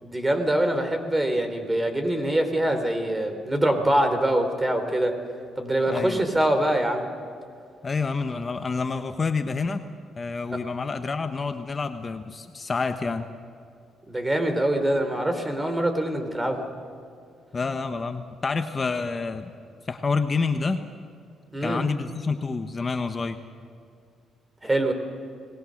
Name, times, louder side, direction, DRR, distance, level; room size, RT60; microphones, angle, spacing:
voice 1, 0.0-5.2 5.6-7.1 10.5-10.6 14.1-16.6 21.5-21.8 24.6-24.9, right 1 dB, 15° right, 7 dB, 3.7 m, -24 dB
voice 2, 5.9-6.2 7.8-9.8 10.2-13.3 17.5-19.5 19.9-20.8 21.6-23.4, left 4 dB, 35° left, 7 dB, 1.1 m, -28 dB
29.0 x 19.5 x 6.6 m, 2.4 s
cardioid pair, 90°, 0 cm